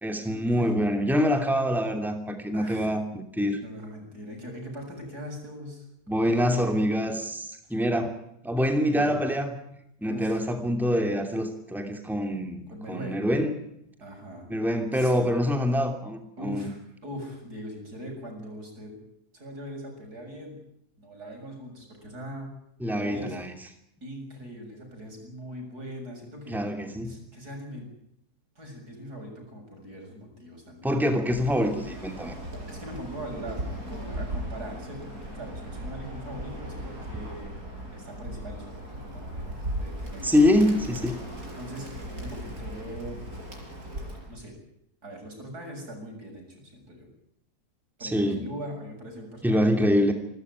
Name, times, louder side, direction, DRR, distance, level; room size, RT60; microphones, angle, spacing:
voice 1, 0.0-3.6 6.1-8.1 8.4-9.5 10.0-12.6 12.9-13.5 14.5-16.7 22.8-23.5 26.5-27.1 30.8-32.3 40.2-41.2 48.0-48.4 49.4-50.1, equal, ahead, 5 dB, 2.8 m, -25 dB
voice 2, 2.5-2.9 3.6-6.2 7.6-7.7 8.9-9.2 10.0-10.4 12.7-13.3 14.0-14.5 14.9-15.1 16.4-19.0 19.3-20.6 21.0-22.5 22.9-23.4 24.0-26.6 27.0-27.9 28.6-30.9 32.7-37.5 37.9-40.4 41.6-41.9 42.2-43.2 44.3-44.6 45.0-47.1 48.0-49.7, equal, 90° right, 2 dB, 7.7 m, -41 dB
Bird, 31.2-44.3, right 1 dB, 65° right, 6.2 m, -37 dB
27.5 x 14.0 x 9.7 m, 0.77 s
omnidirectional pair, 1.6 m